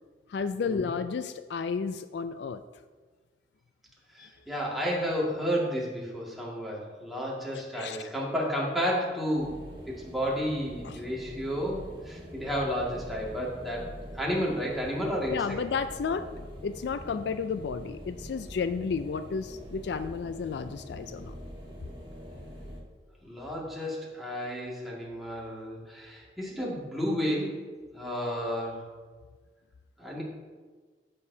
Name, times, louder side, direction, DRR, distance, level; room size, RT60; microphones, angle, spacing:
voice 1, 0.3-2.6 4.2-4.3 7.7-8.0 10.8-11.0 15.3-16.3 16.6-21.3, left 5 dB, 70° left, 11 dB, 0.4 m, -32 dB
voice 2, 4.1-9.5 9.9-13.9 14.1-15.4 23.2-27.5 27.9-28.8 30.0-30.2, equal, ahead, -5 dB, 2.0 m, -31 dB
sound 1, 9.3-22.8, equal, 30° right, 1.5 m, -44 dB
13.5 x 6.7 x 2.7 m, 1.4 s
head